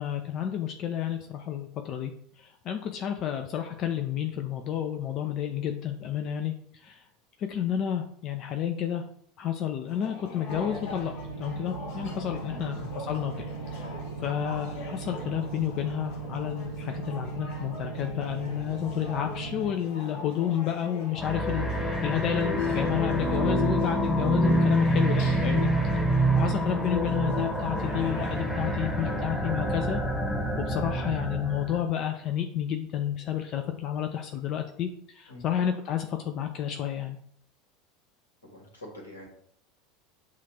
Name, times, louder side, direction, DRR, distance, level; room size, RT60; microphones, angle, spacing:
voice 1, 0.0-2.1 2.4-7.0 7.4-9.0 9.4-13.3 13.7-13.9 14.2-25.7 26.1-30.0 30.6-37.2, left 9 dB, 45° left, 5 dB, 0.4 m, -31 dB
sound 1, 9.9-28.4, left 3 dB, 65° left, 0.9 m, -44 dB
sound 2, 10.4-19.7, right 4 dB, 80° right, 0.4 m, -38 dB
voice 2, 12.5-12.8 30.9-31.2 35.3-35.4 38.5-39.3, equal, 85° left, -1 dB, 1.5 m, -44 dB
sound 3, 21.2-31.8, right 1 dB, 10° left, 1.1 m, -27 dB
7.2 x 2.4 x 2.9 m, 0.64 s
figure-of-eight pair, 75°, 0 cm